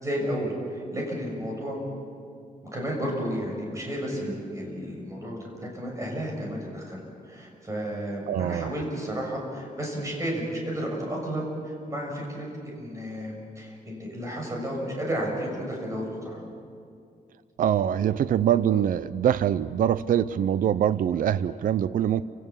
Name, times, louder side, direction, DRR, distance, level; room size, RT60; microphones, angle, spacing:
voice 1, 0.0-1.8 2.7-16.4, equal, 20° right, -1 dB, 6.6 m, -32 dB
voice 2, 8.3-8.7 17.6-22.2, right 10 dB, 70° right, 15 dB, 0.5 m, -24 dB
29.0 x 17.5 x 7.3 m, 2.3 s
wide cardioid pair, 155°, 15 cm